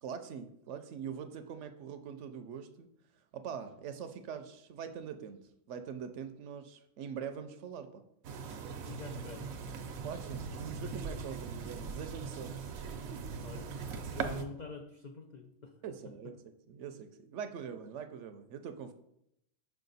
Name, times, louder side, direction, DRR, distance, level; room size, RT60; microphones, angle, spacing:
voice 1, 0.0-2.9 3.3-8.1 10.0-12.7 13.0-13.3 15.8-16.3 16.7-18.9, right 7 dB, 70° right, 9 dB, 0.8 m, -43 dB
sound 1, 8.2-14.4, right 5 dB, 90° right, 1.1 m, -40 dB
voice 2, 8.9-9.5 13.4-15.7, left 3 dB, 75° left, 4 dB, 0.4 m, -46 dB
5.7 x 4.9 x 3.9 m, 0.77 s
omnidirectional pair, 1.4 m